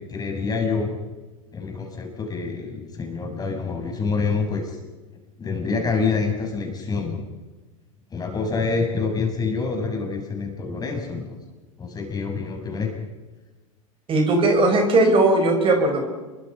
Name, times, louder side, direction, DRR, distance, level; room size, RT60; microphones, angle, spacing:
voice 1, 0.1-1.0 1.5-4.8 5.4-7.2 8.1-11.3 11.8-12.9, left 4 dB, 20° left, 2 dB, 7.3 m, -26 dB
voice 2, 14.1-16.1, right 2 dB, 30° right, 4 dB, 5.5 m, -18 dB
28.0 x 24.0 x 5.8 m, 1.2 s
hypercardioid pair, 100°, 18 cm